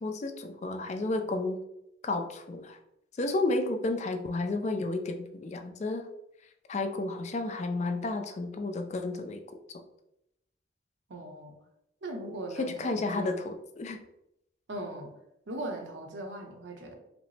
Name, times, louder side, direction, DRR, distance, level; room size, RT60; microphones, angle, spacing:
voice 1, 0.0-1.6 2.0-2.8 3.2-6.1 6.7-9.4 12.6-14.0, left 2 dB, 40° left, 6 dB, 0.4 m, -32 dB
voice 2, 11.1-11.5 12.0-13.4 14.7-15.1 15.5-16.9, right 1 dB, 75° right, 2 dB, 0.7 m, -39 dB
5.0 x 2.0 x 3.1 m, 0.82 s
head